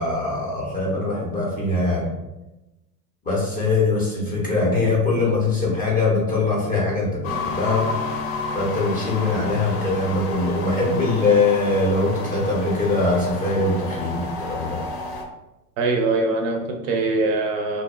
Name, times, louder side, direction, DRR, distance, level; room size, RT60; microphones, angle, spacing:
voice 1, 0.0-2.1 3.2-7.9 8.5-14.8, left 3 dB, 15° left, -4 dB, 0.6 m, -22 dB
sound 1, 7.2-15.2, left 3 dB, 55° left, 0.7 m, -31 dB
voice 2, 15.8-17.8, right 3 dB, 55° right, 3 dB, 0.5 m, -22 dB
2.5 x 2.1 x 2.3 m, 0.98 s
hypercardioid pair, 110°, 49 cm